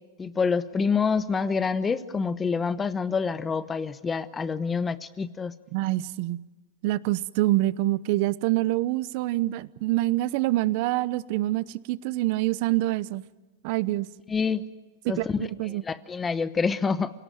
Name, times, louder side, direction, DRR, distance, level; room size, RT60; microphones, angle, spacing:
voice 1, 0.2-5.5 14.3-14.7 15.1-15.5 15.9-17.1, left 5 dB, 15° left, 14 dB, 0.9 m, -27 dB
voice 2, 5.7-6.4 6.8-13.2 13.6-14.1 15.0-15.8, right 17 dB, 55° right, 18 dB, 0.8 m, -26 dB
28.0 x 18.0 x 9.0 m, 1.2 s
supercardioid pair, 135°, 0 cm